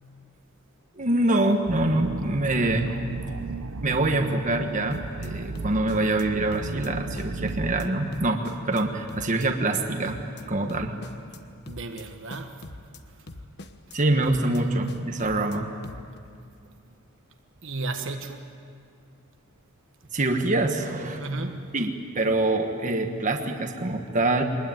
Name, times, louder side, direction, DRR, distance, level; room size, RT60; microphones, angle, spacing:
voice 1, 1.0-3.0 3.8-10.2 10.5-11.0 13.9-15.8 20.1-21.2 21.7-24.4, right 2 dB, 35° right, 4 dB, 1.4 m, -25 dB
sound 1, 1.7-7.9, right 3 dB, 85° right, 0.8 m, -35 dB
sound 2, 4.9-5.3 5.5-6.2 6.5-6.9 7.2-7.9 8.1-8.8 9.1-9.5 9.7-10.4 10.7-11.4 11.7-12.0 12.3-13.0 13.3-14.0 14.2-14.6 14.9-15.6 15.8-16.2, left 2 dB, 50° left, 1.2 m, -42 dB
voice 2, 11.7-12.7 13.1-13.3 14.1-15.0 17.6-18.5 21.2-21.7, right 2 dB, 60° right, 5 dB, 1.5 m, -35 dB
24.0 x 20.5 x 9.2 m, 2.4 s
head